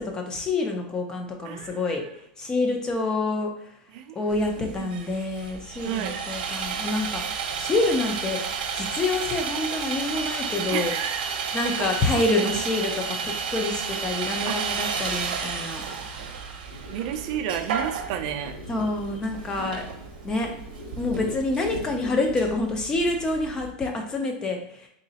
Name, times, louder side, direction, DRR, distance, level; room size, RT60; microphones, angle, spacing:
voice 1, 0.0-2.0 2.4-3.5 4.2-7.2 7.6-8.4 8.7-10.9 11.5-15.8 18.7-19.9 20.2-20.5 21.0-24.9, left 2 dB, 15° left, 3 dB, 0.5 m, -27 dB
voice 2, 1.4-2.2 3.9-4.9 5.8-6.2 10.7-11.3 11.8-11.9 12.4-12.6 14.5-14.6 16.9-18.6, right 10 dB, 50° right, 6 dB, 0.4 m, -32 dB
Sawing, 4.3-23.7, right 6 dB, 85° right, 0.7 m, -32 dB
sound 1, 16.7-22.4, left 2 dB, 60° left, 1.3 m, -42 dB
3.9 x 2.9 x 2.8 m, 0.70 s
supercardioid pair, 165°, 5 cm